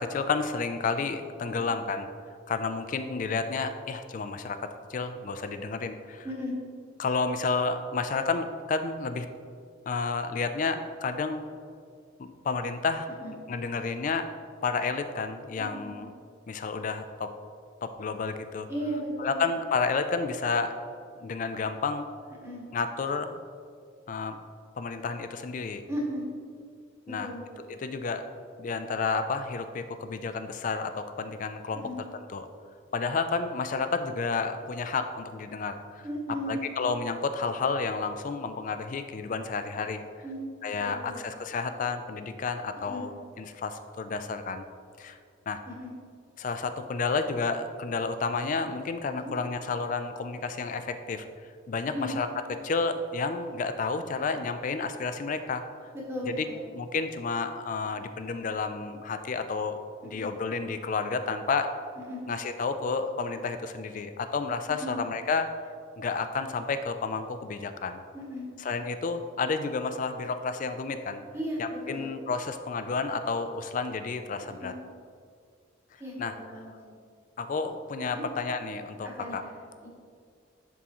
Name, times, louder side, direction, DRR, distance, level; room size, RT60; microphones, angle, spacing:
voice 1, 0.1-2.1 2.5-6.3 7.0-9.3 9.9-11.4 12.2-13.1 13.5-14.3 14.6-16.1 16.5-17.3 17.8-18.7 19.2-20.7 21.2-22.1 22.7-23.4 24.1-24.4 24.8-25.8 27.1-27.3 27.6-28.2 28.6-31.8 32.1-32.5 32.9-36.1 36.5-40.0 40.6-43.1 43.4-44.7 45.0-45.2 45.5-45.6 46.4-51.2 51.7-52.3 52.6-55.6 56.3-56.4 56.7-61.7 62.3-65.5 66.0-68.0 68.6-71.2 71.6-74.7 76.2-76.3 77.4-79.4, left 4 dB, 40° left, 9 dB, 0.3 m, -31 dB
voice 2, 15.6-16.0 18.7-19.4 22.4-22.6 25.9-26.3 27.1-27.6 31.8-32.0 36.0-36.6 40.2-40.4 40.8-41.3 42.9-43.0 45.7-45.9 49.2-49.3 51.9-52.2 56.1-56.6 60.1-60.3 62.0-62.2 64.8-65.0 68.1-68.4 71.3-72.1 74.5-74.7 76.0-76.7 78.1-78.2 79.0-79.9, equal, 15° right, -4 dB, 1.2 m, -36 dB
11.0 x 3.6 x 3.0 m, 2.2 s
head